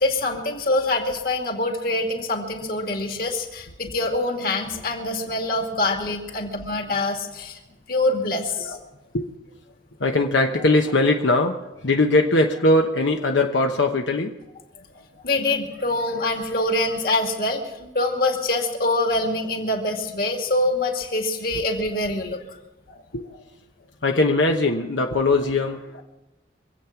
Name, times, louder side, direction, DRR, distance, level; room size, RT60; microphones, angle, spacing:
voice 1, 0.0-7.6 7.9-8.8 15.2-22.4, left 2 dB, 50° left, 2 dB, 2.3 m, -25 dB
voice 2, 10.0-14.3 17.1-17.2 22.9-23.4 24.0-26.0, left 2 dB, 85° left, 3 dB, 1.1 m, -21 dB
25.0 x 8.6 x 5.9 m, 1.0 s
head